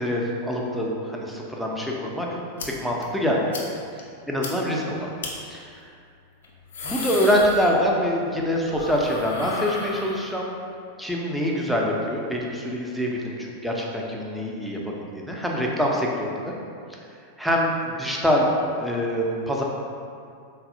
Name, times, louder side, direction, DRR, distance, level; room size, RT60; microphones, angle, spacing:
voice 1, 0.0-2.3 2.8-3.5 4.3-5.1 5.5-5.7 6.8-10.5 11.0-16.6 17.4-18.5 18.8-19.6, equal, ahead, -2 dB, 0.4 m, -25 dB
sound 1, 2.6-2.7 3.0-3.1 3.5-3.7 4.0-4.1 4.4-4.5 5.2-5.3 6.4-8.1 8.4-10.6, left 3 dB, 60° left, 0.4 m, -34 dB
3.9 x 2.1 x 2.6 m, 2.4 s
figure-of-eight pair, 90°, 0 cm